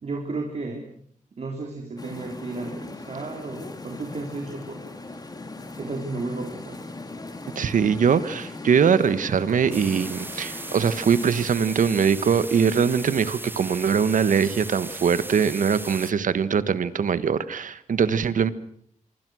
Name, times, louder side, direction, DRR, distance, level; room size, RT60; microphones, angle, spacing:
voice 1, 0.0-0.9 1.4-5.1 5.8-6.8, right 3 dB, 50° right, 2 dB, 3.8 m, -33 dB
sound 1, 2.0-11.5, left 2 dB, 30° left, 2.8 m, -39 dB
voice 2, 7.5-18.5, right 6 dB, 75° right, 14 dB, 1.5 m, -22 dB
sound 2, 9.7-16.1, right 2 dB, 15° right, 1.1 m, -37 dB
26.0 x 24.0 x 6.4 m, 0.64 s
wide cardioid pair, 120°, 14 cm